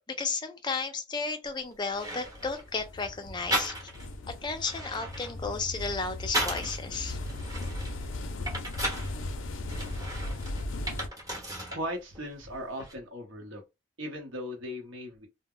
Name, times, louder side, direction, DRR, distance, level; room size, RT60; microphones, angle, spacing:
voice 1, 0.1-3.8 4.4-7.2, left 4 dB, 20° left, 0.4 m, -33 dB
sound 1, 1.5-1.6 1.9-2.7 3.5-4.1 4.5-6.8 7.2-9.1 9.7-11.8 12.1-12.9, equal, 15° right, 0.9 m, -35 dB
sound 2, 2.3-11.1, left 2 dB, 75° left, 0.5 m, -37 dB
voice 2, 11.7-13.6 14.0-15.3, equal, 70° right, 0.9 m, -38 dB
2.1 x 2.0 x 3.6 m
head